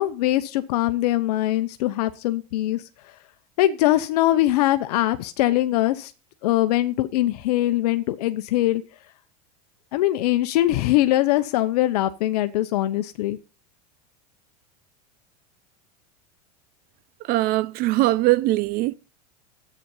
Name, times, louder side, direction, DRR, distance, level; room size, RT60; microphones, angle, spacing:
voice 1, 0.0-2.9 3.6-6.1 6.4-8.8 9.9-13.4, left 15 dB, 75° left, 0.9 m, -22 dB
voice 2, 17.2-18.9, right 18 dB, 50° right, 0.7 m, -21 dB
11.0 x 8.6 x 5.5 m
supercardioid pair, 110°, 20 cm